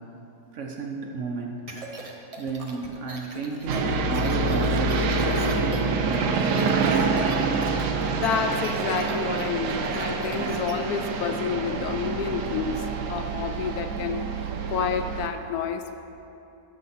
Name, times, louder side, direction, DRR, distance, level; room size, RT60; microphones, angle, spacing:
voice 1, 0.5-1.6 2.4-6.4 6.8-7.3, right 4 dB, 60° right, 1 dB, 0.9 m, -32 dB
sound 1, 1.7-10.7, right 3 dB, 35° right, 0.5 m, -39 dB
sound 2, 3.7-15.3, right 4 dB, 85° right, 1.3 m, -26 dB
voice 2, 8.2-14.3 14.7-15.9, left 6 dB, 75° left, 7 dB, 1.0 m, -29 dB
12.0 x 6.5 x 4.2 m, 2.8 s
omnidirectional pair, 1.7 m